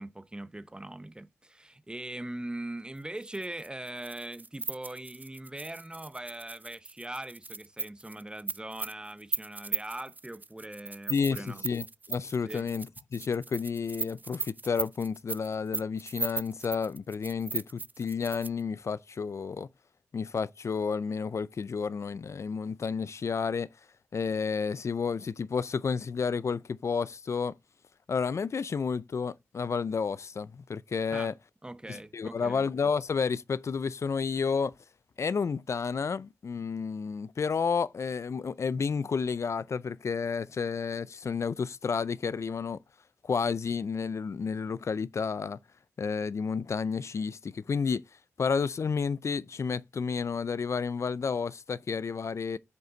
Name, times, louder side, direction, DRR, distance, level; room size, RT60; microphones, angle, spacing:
voice 1, 0.0-11.6 12.4-12.7 31.1-31.3 31.6-32.6, right 1 dB, 15° right, 0.8 m, -41 dB
sound 1, 3.2-18.6, right 3 dB, 30° right, 0.5 m, -37 dB
voice 2, 11.1-19.7 20.1-23.7 24.1-27.5 28.1-31.3 31.9-34.7 35.2-42.8 43.2-45.6 46.0-48.0 48.4-52.6, left 5 dB, 60° left, 0.4 m, -31 dB
9.4 x 5.4 x 3.9 m
cardioid pair, 65°, 5 cm